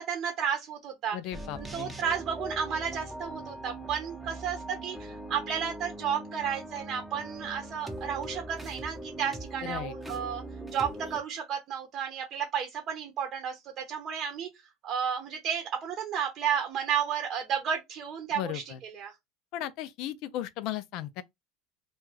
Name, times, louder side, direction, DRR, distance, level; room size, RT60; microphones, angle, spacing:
voice 1, 0.0-1.2 1.6-10.4 10.7-14.5 14.8-19.1, right 8 dB, 45° right, 0.7 m, -32 dB
voice 2, 1.1-1.9 9.6-9.9 18.3-18.8 19.5-21.2, left 12 dB, 60° left, 0.4 m, -36 dB
sound 1, 1.3-11.2, right 1 dB, 10° right, 0.7 m, -41 dB
2.4 x 2.3 x 3.2 m
supercardioid pair, 100°, 0 cm